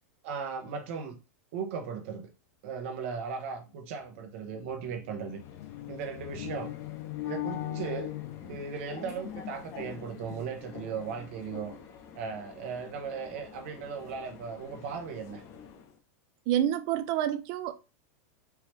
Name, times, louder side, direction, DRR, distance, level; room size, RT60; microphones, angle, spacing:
voice 1, 0.2-1.2 1.5-2.3 2.6-5.4 5.9-6.7 7.2-8.1 8.4-11.7 12.2-15.4, right 6 dB, 60° right, 1.0 m, -37 dB
sound 1, 3.7-3.8 4.0-9.1, left 17 dB, 75° left, 0.4 m, -40 dB
sound 2, 5.1-16.0, left 7 dB, 35° left, 0.7 m, -46 dB
voice 2, 16.5-17.7, right 11 dB, 45° right, 0.5 m, -28 dB
4.7 x 3.1 x 3.3 m
supercardioid pair, 150°, 8 cm